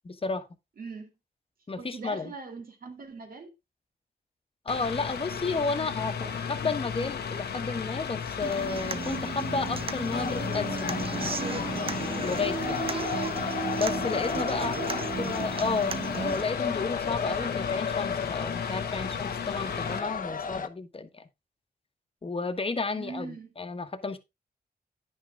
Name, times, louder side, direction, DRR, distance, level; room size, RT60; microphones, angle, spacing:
voice 1, 0.0-0.4 1.7-2.3 4.6-11.5 12.2-12.9 13.7-14.7 15.2-21.2 22.2-23.3 23.6-24.2, left 4 dB, 35° left, 1.3 m, -32 dB
voice 2, 0.8-1.1 1.8-3.5 5.8-6.4 14.5-15.6 22.9-23.5, right 3 dB, 60° right, 2.4 m, -42 dB
Mechanical fan, 4.7-20.0, left 7 dB, 85° left, 1.3 m, -35 dB
Human voice / Acoustic guitar, 8.4-16.4, right 5 dB, 35° right, 0.6 m, -35 dB
sound 1, 10.1-20.7, left 6 dB, 55° left, 1.0 m, -34 dB
10.5 x 6.2 x 3.4 m
cardioid pair, 75°, 17 cm